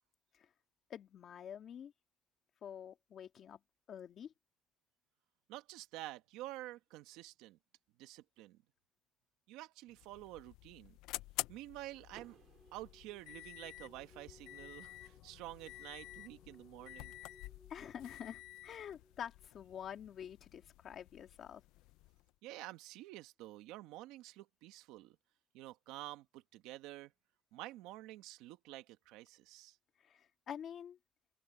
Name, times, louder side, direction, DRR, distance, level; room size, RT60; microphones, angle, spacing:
voice 1, 0.9-1.9 2.6-3.6 3.9-4.3 17.7-21.6 30.0-31.0, left 9 dB, 40° left, 2.2 m, -48 dB
voice 2, 5.5-7.6 8.0-8.6 9.5-11.0 11.5-12.4 12.7-17.2 22.4-25.2 25.5-27.1 27.5-29.8, right 16 dB, 80° right, 1.6 m, -49 dB
sound 1, 9.9-22.3, left 18 dB, 80° left, 0.5 m, -50 dB
sound 2, 11.7-19.5, left 1 dB, 5° left, 8.0 m, -65 dB
Car / Door, 12.1-14.1, right 10 dB, 45° right, 4.7 m, -64 dB
open air
cardioid pair, 160°, 0 cm